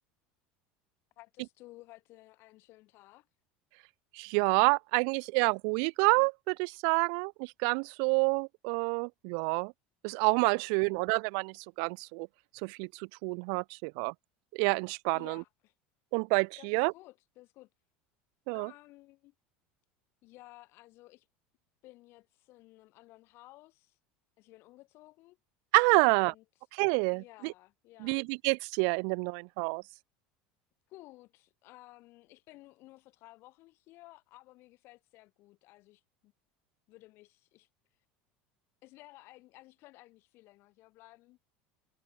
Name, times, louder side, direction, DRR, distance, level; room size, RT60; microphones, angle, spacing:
voice 1, 1.2-3.3 10.7-10.9 15.1-15.7 16.5-17.7 18.5-19.3 20.2-21.3 21.8-24.0 24.4-25.4 26.0-26.4 27.1-28.2 30.9-36.3 36.9-38.0 38.8-41.4, left 19 dB, 60° left, 3.9 m, -55 dB
voice 2, 4.1-9.7 10.0-12.3 12.6-14.1 14.5-15.4 16.1-16.9 18.5-18.7 25.7-26.3 26.7-27.5 28.0-29.8, right 40 dB or more, 70° right, 0.4 m, -28 dB
supercardioid pair, 100°, 5 cm